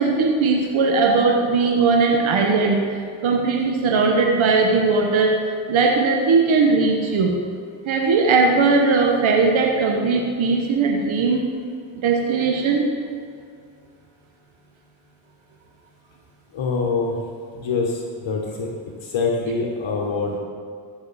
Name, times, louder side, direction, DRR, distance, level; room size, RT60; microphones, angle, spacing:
voice 1, 0.0-5.3 5.7-7.3 7.8-11.4 12.0-12.8, right 4 dB, 80° right, 1 dB, 1.1 m, -19 dB
voice 2, 16.5-17.2 17.5-18.7 19.0-20.4, left 4 dB, 70° left, 0 dB, 1.3 m, -24 dB
14.5 x 6.2 x 4.1 m, 2.2 s
cardioid pair, 55°, 47 cm